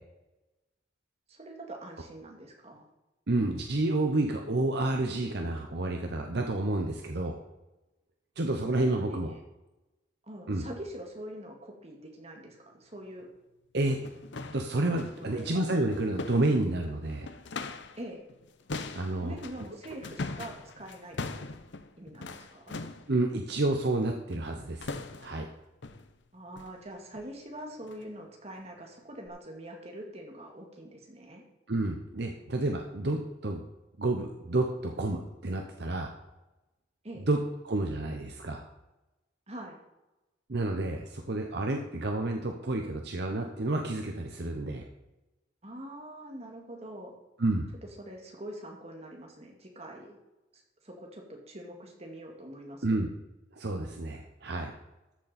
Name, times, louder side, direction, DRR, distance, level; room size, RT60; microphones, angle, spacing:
voice 1, 1.3-2.9 8.9-9.2 10.2-13.3 15.2-15.6 18.0-18.2 19.2-21.2 22.0-22.8 26.3-31.4 37.0-37.3 39.5-39.8 45.6-47.1 48.0-50.2 50.5-53.0, right 1 dB, 35° right, 1 dB, 2.0 m, -44 dB
voice 2, 3.3-7.3 8.4-9.3 10.5-10.6 13.7-14.0 14.5-17.3 18.9-19.3 23.1-24.9 25.2-25.5 31.7-33.6 34.0-36.1 37.3-37.4 37.6-38.6 40.5-44.8 47.4-47.7 52.8-53.1 53.5-54.7, right 2 dB, 60° right, 3 dB, 0.8 m, -30 dB
sound 1, 13.2-13.3 13.8-18.0 18.3-23.1 24.3-24.5 24.8-25.5 25.8-26.1 26.6-26.8 27.1-27.3 27.8-28.0 28.5-28.6 29.3-29.4, left 3 dB, 65° left, 0.7 m, -41 dB
13.5 x 6.8 x 4.2 m, 1.0 s
head